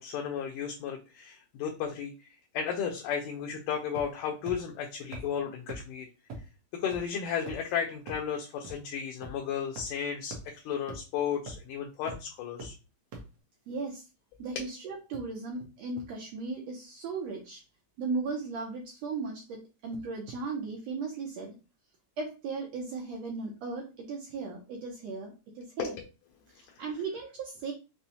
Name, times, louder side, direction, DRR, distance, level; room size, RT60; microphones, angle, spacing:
voice 1, 0.0-2.3 2.5-6.1 6.7-12.7 14.6-14.7 25.8-25.9, left 7 dB, 80° left, 1 dB, 1.9 m, -34 dB
sound 1, 4.0-4.2 4.5-4.6 5.1-5.2 5.7-5.8 6.3-6.4 6.9-7.0 7.5-7.7 8.1-8.2 8.6-8.7 9.2-9.3 9.8-9.9 10.3-10.4 10.9-11.0 11.5-11.7 12.1-12.2 12.6-12.7 13.1-13.2, right 3 dB, 70° right, 1.8 m, -40 dB
voice 2, 13.7-14.0 14.4-17.6 18.0-21.5 22.2-25.9 26.5-27.7, right 4 dB, 90° right, -1 dB, 1.5 m, -37 dB
5.7 x 2.1 x 2.6 m, 0.31 s
omnidirectional pair, 3.8 m